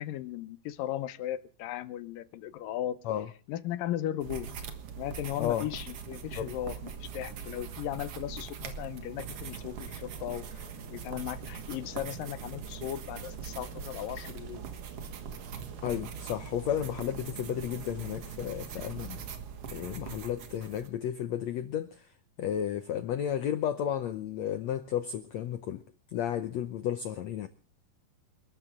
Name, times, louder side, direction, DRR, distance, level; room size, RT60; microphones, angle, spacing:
voice 1, 0.0-3.0 3.5-4.5 5.0-14.6, left 12 dB, 75° left, 2.4 m, -37 dB
sound 1, 4.2-20.9, right 7 dB, 55° right, 1.8 m, -42 dB
sound 2, 9.2-19.4, right 7 dB, 85° right, 4.0 m, -50 dB
voice 2, 15.8-19.2 19.7-22.1 22.4-25.8 26.1-27.5, left 10 dB, 90° left, 1.5 m, -33 dB
29.0 x 12.5 x 3.7 m
omnidirectional pair, 4.4 m